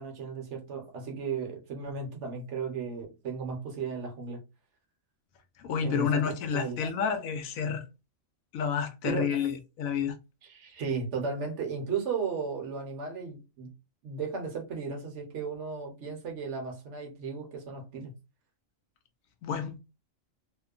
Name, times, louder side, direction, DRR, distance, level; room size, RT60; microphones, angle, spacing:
voice 1, 0.0-4.4 5.8-6.8 9.0-9.4 10.5-13.7 14.0-18.1, right 5 dB, 65° right, 1.0 m, -35 dB
voice 2, 5.6-7.8 8.5-10.2 19.4-19.8, left 7 dB, 85° left, 1.0 m, -30 dB
2.8 x 2.1 x 2.3 m
omnidirectional pair, 1.4 m